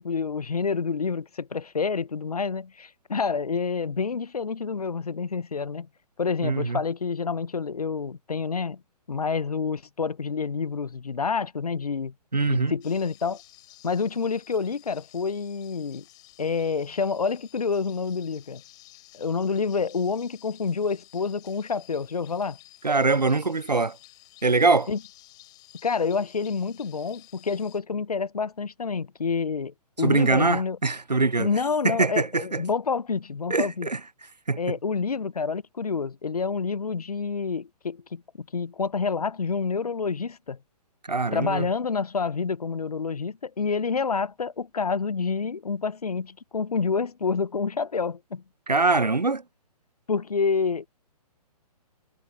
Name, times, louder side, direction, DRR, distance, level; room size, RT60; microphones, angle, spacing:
voice 1, 0.0-5.9 6.2-8.8 9.1-12.1 12.5-13.4 13.8-16.0 16.4-18.6 19.1-22.6 24.9-25.0 25.8-30.8 31.4-33.9 34.6-40.6 41.3-48.4 50.1-50.9, left 5 dB, 65° left, 0.9 m, -28 dB
voice 2, 6.4-6.8 12.3-12.7 22.8-24.0 24.4-24.9 30.0-31.5 31.8-32.6 33.5-34.0 34.5-34.7 41.1-41.7 48.7-49.4, right 3 dB, 85° right, 0.7 m, -23 dB
sound 1, 12.8-27.8, left 18 dB, 20° left, 4.0 m, -53 dB
figure-of-eight pair, 130°, 21 cm